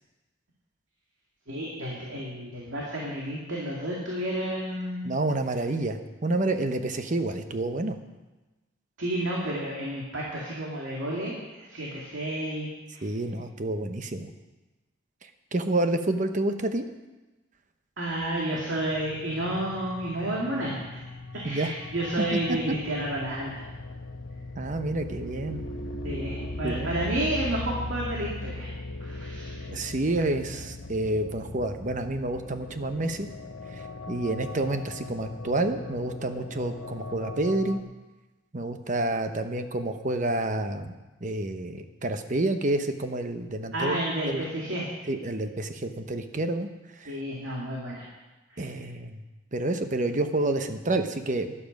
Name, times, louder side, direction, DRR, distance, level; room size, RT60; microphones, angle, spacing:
voice 1, 1.5-5.1 9.0-12.7 12.9-13.1 18.0-21.0 21.4-23.7 26.0-28.7 29.0-29.7 43.7-44.9 47.1-48.1 48.5-48.7, right 1 dB, 80° right, -4 dB, 2.4 m, -31 dB
voice 2, 5.0-8.0 13.0-14.3 15.5-16.8 21.4-21.7 22.3-22.6 24.5-25.6 26.6-26.9 29.7-33.3 34.1-37.8 38.5-40.9 41.2-44.0 44.3-44.4 45.1-46.7 47.0-47.2 48.6-49.2 49.5-51.5, right 2 dB, 40° right, 8 dB, 0.9 m, -29 dB
sound 1, 18.8-37.8, left 2 dB, 80° left, 1.0 m, -39 dB
12.0 x 11.5 x 5.3 m, 1.1 s
head